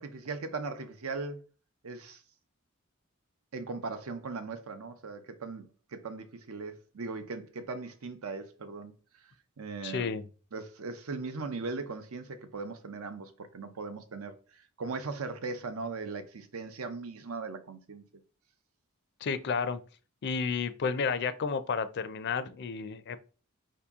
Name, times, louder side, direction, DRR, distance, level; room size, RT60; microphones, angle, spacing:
voice 1, 0.0-1.4 1.8-2.2 3.5-8.9 9.2-9.3 9.6-10.1 10.5-18.0, right 4 dB, 85° right, 0.7 m, -39 dB
voice 2, 9.8-10.2 19.2-19.8 20.2-23.2, left 5 dB, 55° left, 0.4 m, -31 dB
4.9 x 2.8 x 3.5 m
head